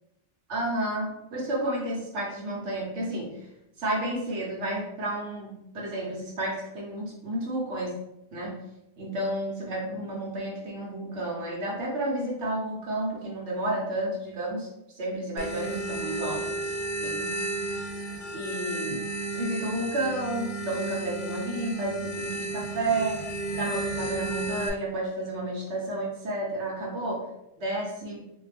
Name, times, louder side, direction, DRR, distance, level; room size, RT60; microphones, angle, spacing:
voice 1, 0.5-3.3 3.8-7.9 8.3-8.6 9.0-14.7 14.9-16.6 17.0-17.7 18.3-19.0 19.3-23.2 23.5-27.2 27.6-28.2, right 1 dB, 75° right, -3 dB, 1.2 m, -31 dB
sound 1, 15.4-24.7, right 2 dB, 55° left, 0.7 m, -33 dB
2.6 x 2.3 x 3.3 m, 0.87 s
omnidirectional pair, 1.2 m